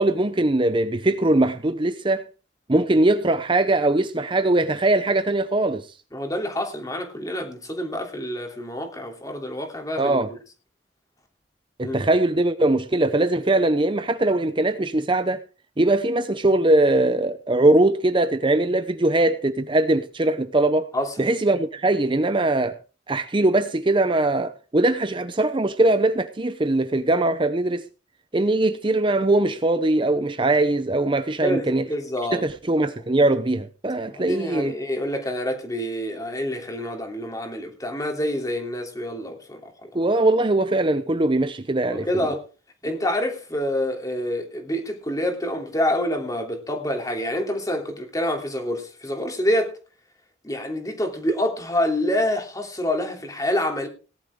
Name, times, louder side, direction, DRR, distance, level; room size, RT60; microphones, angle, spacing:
voice 1, 0.0-2.3 2.7-5.9 10.0-10.3 11.8-15.4 15.8-20.9 21.2-22.8 23.1-27.8 28.3-31.9 32.3-34.7 39.9-42.1, right 2 dB, 25° right, 0.7 m, -21 dB
voice 2, 6.1-10.4 11.8-12.0 20.9-21.1 31.4-32.4 34.0-39.6 41.8-42.4 42.8-49.7 50.4-53.9, left 1 dB, 20° left, 3.0 m, -27 dB
18.0 x 11.5 x 3.7 m
head